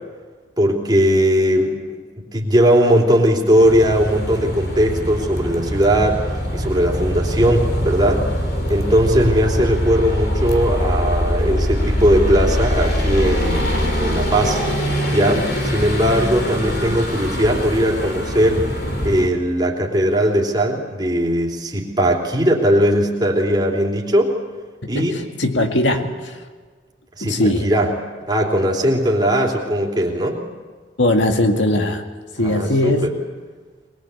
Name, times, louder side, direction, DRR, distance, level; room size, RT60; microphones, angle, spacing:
voice 1, 0.6-8.2 8.7-14.6 15.1-18.6 19.0-24.3 24.9-25.2 25.9-26.1 27.2-27.9 28.3-30.4 32.4-33.1, equal, 25° right, -1 dB, 3.3 m, -18 dB
sound 1, 3.6-19.3, equal, 60° left, 3.1 m, -23 dB
voice 2, 24.8-26.4 27.2-27.7 31.0-32.1 32.4-33.1, left 1 dB, 85° left, 4 dB, 2.1 m, -20 dB
23.0 x 21.0 x 8.4 m, 1.4 s
head